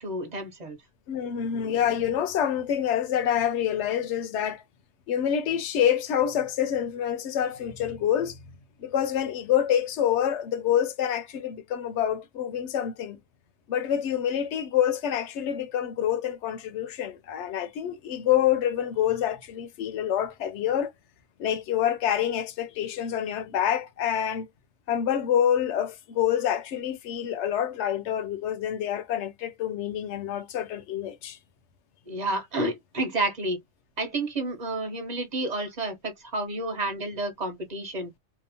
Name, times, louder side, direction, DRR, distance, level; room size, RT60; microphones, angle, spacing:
voice 1, 0.0-0.8 32.1-33.6 34.0-38.1, right 2 dB, 35° right, 1.0 m, -30 dB
voice 2, 1.1-4.6 5.1-8.4 8.8-13.2 13.7-20.9 21.4-24.5 24.9-31.4, left 10 dB, 75° left, 0.9 m, -27 dB
2.8 x 2.0 x 2.6 m
omnidirectional pair, 1.2 m